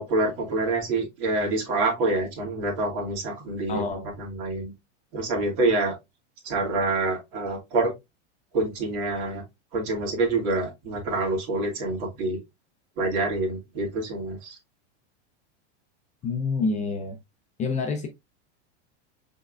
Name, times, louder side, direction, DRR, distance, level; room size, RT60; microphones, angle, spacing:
voice 1, 0.0-4.7 5.1-5.9 6.4-7.9 8.5-9.4 9.7-12.4 13.0-14.6, right 2 dB, 50° right, 2.4 m, -26 dB
voice 2, 3.7-4.1 16.2-17.2 17.6-18.1, left 4 dB, 20° left, 0.6 m, -27 dB
5.4 x 3.7 x 2.4 m
supercardioid pair, 140°, 35 cm